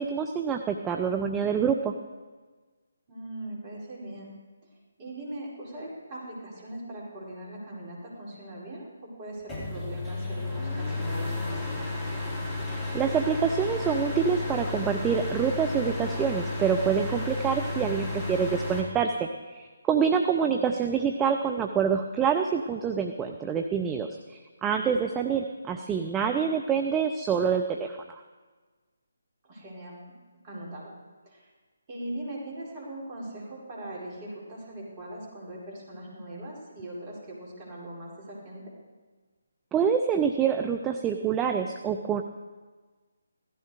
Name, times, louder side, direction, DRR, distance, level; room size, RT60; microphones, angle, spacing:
voice 1, 0.0-1.9 12.9-28.2 39.7-42.2, right 7 dB, 10° right, 5 dB, 0.6 m, -26 dB
voice 2, 3.1-4.3 5.0-12.0 20.4-20.7 29.4-30.0 30.4-30.9 31.2-31.5 31.9-38.7, right 1 dB, 25° right, -4 dB, 4.7 m, -40 dB
sound 1, 9.5-18.8, left 2 dB, 10° left, 2.8 m, -32 dB
16.0 x 14.5 x 4.8 m, 1.4 s
figure-of-eight pair, 145°, 0 cm